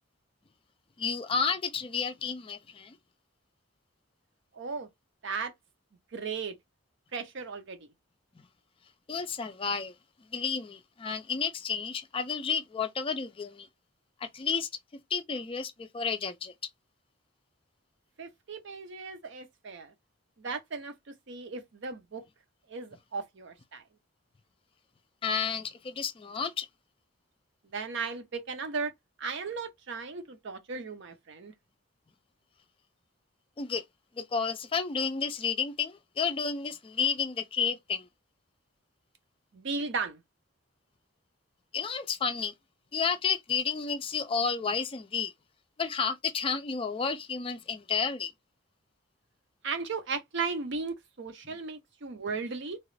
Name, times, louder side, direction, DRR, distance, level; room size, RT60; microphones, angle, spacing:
voice 1, 1.0-3.0 9.1-9.9 10.3-13.7 14.2-14.7 15.1-16.5 25.2-26.7 33.6-33.8 34.2-38.1 41.7-42.5 42.9-45.3 45.8-48.3, left 6 dB, 25° left, 0.3 m, -31 dB
voice 2, 4.5-4.9 5.2-5.5 6.1-6.5 7.1-7.9 18.2-19.9 20.4-20.9 21.3-22.2 22.7-23.8 27.6-28.9 29.2-31.5 39.5-40.2 49.6-52.8, right 4 dB, 60° right, 0.6 m, -36 dB
2.9 x 2.4 x 3.1 m
head